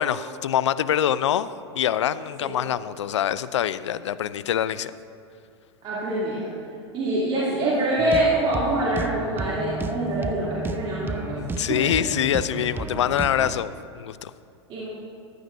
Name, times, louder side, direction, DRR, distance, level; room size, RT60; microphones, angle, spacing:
voice 1, 0.0-1.5 1.8-4.9 11.4-14.3, left 10 dB, 85° left, 16 dB, 0.4 m, -25 dB
voice 2, 5.8-6.5 6.9-11.4 11.7-11.8 14.7-14.8, right 1 dB, 35° right, -9 dB, 2.8 m, -25 dB
sound 1, 8.0-13.6, right 4 dB, 15° right, 0.5 m, -32 dB
14.5 x 11.0 x 2.7 m, 2.4 s
hypercardioid pair, 110°, 15 cm